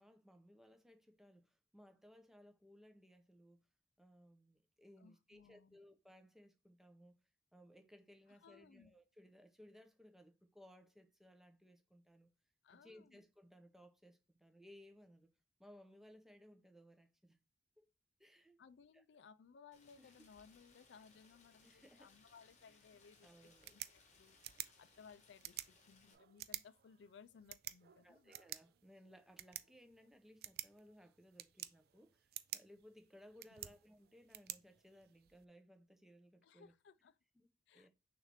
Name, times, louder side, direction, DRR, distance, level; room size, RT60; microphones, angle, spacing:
voice 1, 0.0-3.6 4.0-7.1 7.5-12.3 12.7-15.3 15.6-17.4 17.8-17.9 18.2-18.6 18.9-19.0 20.0-20.1 21.6-22.1 22.7-22.8 23.2-23.8 28.0-36.7 37.4-37.5 37.7-37.9, equal, ahead, 0.5 m, -62 dB
voice 2, 5.0-5.8 8.3-8.9 12.6-13.2 18.6-28.3 36.4-37.2 37.7-37.9, left 6 dB, 90° left, 0.4 m, -62 dB
Rain, 19.7-26.1, left 4 dB, 40° left, 1.0 m, -68 dB
sound 1, 23.4-35.4, right 14 dB, 60° right, 0.3 m, -52 dB
6.3 x 2.5 x 3.3 m
head